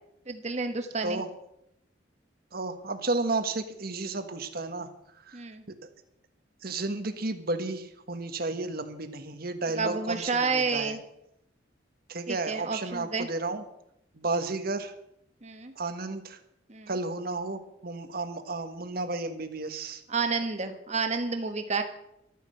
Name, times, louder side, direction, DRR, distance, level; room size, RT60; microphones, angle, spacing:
voice 1, 0.3-1.2 5.3-5.6 9.8-11.0 12.3-13.3 15.4-15.7 16.7-16.9 20.1-21.8, right 4 dB, 35° right, 6 dB, 1.4 m, -30 dB
voice 2, 2.5-4.9 5.2-5.4 5.8-5.9 6.6-11.0 12.1-13.6 14.1-14.9 15.7-16.4 16.9-20.0, right 3 dB, 50° right, 8 dB, 1.4 m, -32 dB
13.5 x 9.5 x 7.8 m, 0.79 s
head